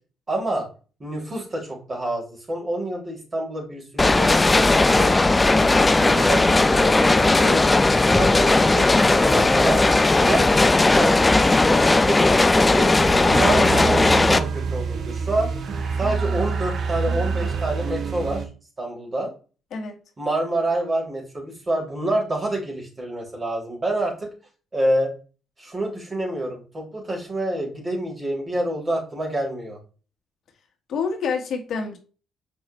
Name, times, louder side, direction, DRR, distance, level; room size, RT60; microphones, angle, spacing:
voice 1, 0.3-0.7 1.0-5.2 5.6-7.6 7.9-9.8 10.2-11.1 11.4-12.9 13.2-15.5 16.0-18.4 18.8-19.3 20.2-24.3 24.7-25.1 25.6-29.8, right 1 dB, 30° right, 3.7 m, -27 dB
sound 1, 4.0-14.4, left 2 dB, 20° left, 0.5 m, -17 dB
voice 2, 5.5-5.8 19.7-20.0 30.9-32.0, left 5 dB, 65° left, 1.6 m, -28 dB
sound 2, 12.9-18.5, right 5 dB, 55° right, 1.1 m, -27 dB
6.9 x 5.5 x 3.1 m
cardioid pair, 90°, 0 cm